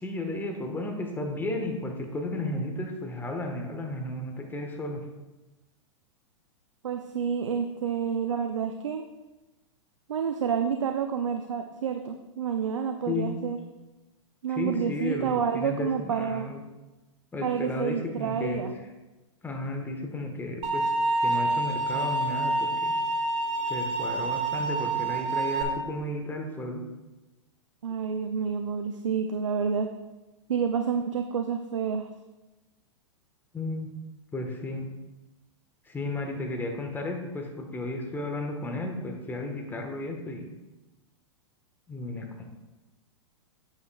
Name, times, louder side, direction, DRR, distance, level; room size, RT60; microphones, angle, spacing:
voice 1, 0.0-5.0 13.0-13.4 14.5-16.6 17.3-18.6 19.4-20.9 21.2-22.9 23.7-26.8 33.5-33.9 34.3-34.9 35.9-40.5 41.9-42.4, left 2 dB, 10° left, 3 dB, 1.4 m, -33 dB
voice 2, 6.8-9.1 10.1-13.6 14.4-16.5 17.4-18.7 27.8-29.9 30.5-32.1, right 7 dB, 80° right, 7 dB, 0.6 m, -29 dB
sound 1, 20.6-25.6, right 2 dB, 35° right, 1.9 m, -27 dB
9.4 x 8.8 x 2.4 m, 1.1 s
hypercardioid pair, 110°, 16 cm